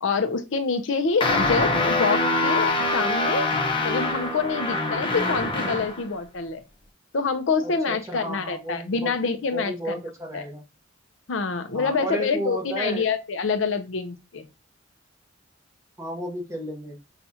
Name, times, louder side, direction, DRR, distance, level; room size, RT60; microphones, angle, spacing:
voice 1, 0.0-3.5 3.8-6.6 7.1-10.0 10.3-10.4 11.3-14.5, left 4 dB, 75° left, 0.6 m, -26 dB
sound 1, 1.2-6.0, left 2 dB, 25° left, 0.7 m, -24 dB
voice 2, 7.6-9.1 9.5-10.6 11.7-13.0 16.0-17.0, equal, 15° right, 1.0 m, -33 dB
5.5 x 2.4 x 2.8 m
head